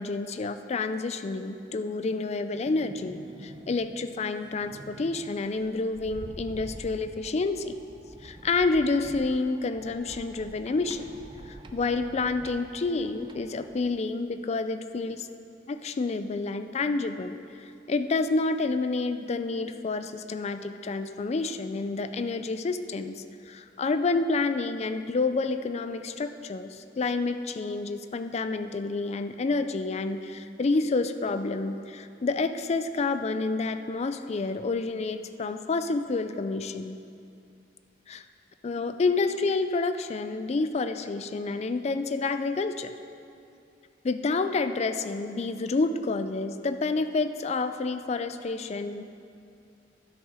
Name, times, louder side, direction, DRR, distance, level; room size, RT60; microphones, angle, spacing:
voice 1, 0.0-7.8 8.2-11.2 11.7-15.3 15.7-17.4 17.9-37.0 38.1-38.2 38.6-42.9 44.0-49.0, left 3 dB, 35° left, 10 dB, 0.4 m, -29 dB
sound 1, 2.6-13.9, right 1 dB, 30° right, 0.6 m, -47 dB
12.0 x 6.4 x 4.9 m, 2.5 s
head